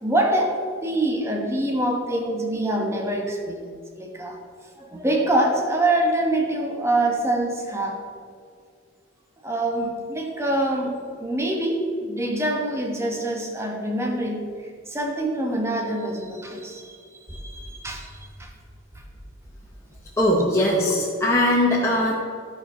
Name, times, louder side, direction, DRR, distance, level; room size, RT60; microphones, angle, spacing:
voice 1, 0.0-3.7 4.0-4.4 4.8-8.0 9.4-14.4 14.9-18.5 18.9-19.0, right 1 dB, 15° right, 1 dB, 1.1 m, -25 dB
voice 2, 20.2-22.1, left 1 dB, 15° left, -5 dB, 0.9 m, -20 dB
12.5 x 4.6 x 5.6 m, 2.2 s
head